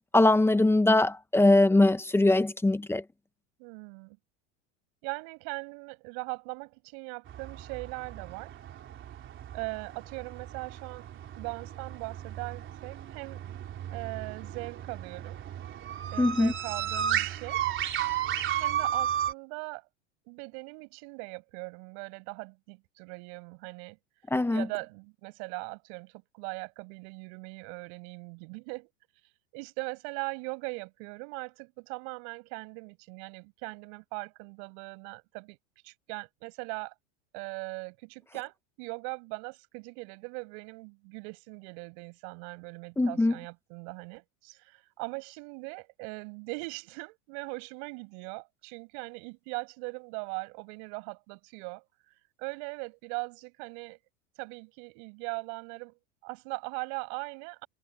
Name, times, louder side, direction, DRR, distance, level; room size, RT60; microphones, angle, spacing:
voice 1, 0.1-3.0 16.2-16.5 24.3-24.7 43.0-43.3, left 2 dB, 5° left, 1.0 m, -22 dB
voice 2, 3.6-4.2 5.0-8.5 9.5-11.1 11.4-13.4 13.9-15.4 16.1-17.6 18.6-19.8 20.2-24.0 24.5-28.9 29.5-35.6 35.8-36.9 37.3-51.8 52.4-54.0 54.4-57.7, right 38 dB, 60° right, 7.7 m, -40 dB
sound 1, 7.3-19.3, right 10 dB, 35° right, 3.3 m, -34 dB
supercardioid pair, 125°, 35 cm